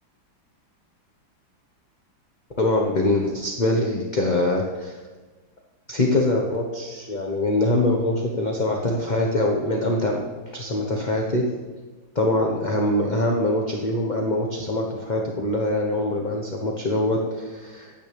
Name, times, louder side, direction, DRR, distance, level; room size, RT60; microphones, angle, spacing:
voice 1, 2.6-5.0 5.9-10.2 10.5-11.4 12.1-17.9, left 1 dB, 25° left, 0 dB, 1.2 m, -23 dB
24.5 x 9.6 x 3.5 m, 1.3 s
omnidirectional pair, 2.1 m